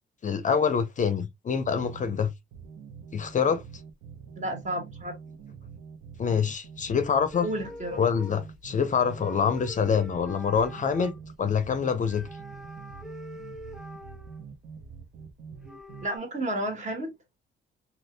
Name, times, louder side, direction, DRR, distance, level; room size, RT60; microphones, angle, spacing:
voice 1, 0.2-2.3 3.1-3.6 6.2-7.5 8.0-11.1 11.4-12.3, left 6 dB, 40° left, 0.5 m, -25 dB
sound 1, 1.6-16.1, right 6 dB, 75° right, 0.9 m, -45 dB
voice 2, 4.4-5.1 7.4-8.0 16.0-17.1, right 1 dB, 35° right, 1.7 m, -31 dB
sound 2, 7.3-8.6 9.1-11.2 12.1-14.5 15.2-15.3 15.5-16.2, left 1 dB, ahead, 0.8 m, -44 dB
2.7 x 2.6 x 3.2 m
cardioid pair, 90°, 20 cm